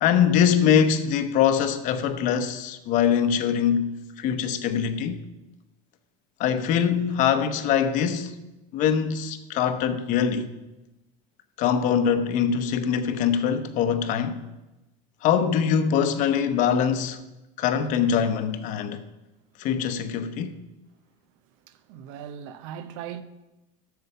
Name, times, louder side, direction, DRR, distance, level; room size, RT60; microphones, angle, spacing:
voice 1, 0.0-3.9 4.2-5.2 6.4-8.4 8.7-10.5 11.6-14.4 15.2-17.2 17.6-19.0 19.6-20.5, left 8 dB, 50° left, 0.9 m, -23 dB
voice 2, 21.9-23.2, right 9 dB, 75° right, 0.8 m, -38 dB
8.1 x 6.8 x 6.7 m
supercardioid pair, 135°, 16 cm